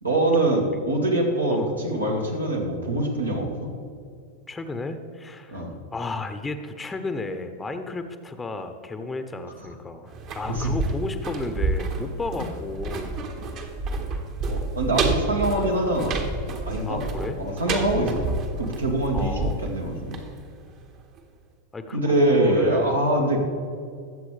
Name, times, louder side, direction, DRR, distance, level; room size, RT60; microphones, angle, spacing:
voice 1, 0.0-3.7 5.5-5.7 10.6-10.7 14.5-16.2 16.6-17.0 17.4-20.2 21.9-23.4, right 1 dB, 80° right, 0 dB, 2.1 m, -24 dB
voice 2, 4.5-5.6 5.9-13.2 16.8-17.4 19.1-19.7 21.7-23.4, left 2 dB, 10° left, 8 dB, 0.9 m, -32 dB
sound 1, 10.1-20.9 21.2-21.3, right 3 dB, 35° right, 1.4 m, -29 dB
21.5 x 7.8 x 3.3 m, 2.3 s
figure-of-eight pair, 90°, 0 cm